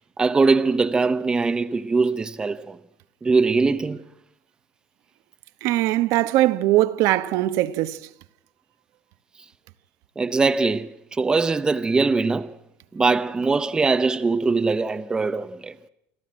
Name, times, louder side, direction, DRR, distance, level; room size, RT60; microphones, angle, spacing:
voice 1, 0.2-2.8 3.2-4.0 10.2-12.5 12.9-15.7, right 4 dB, 15° right, 0.7 m, -21 dB
voice 2, 5.6-8.1, right 16 dB, 60° right, 1.0 m, -21 dB
27.0 x 13.5 x 8.8 m
cardioid pair, 150°, 6 cm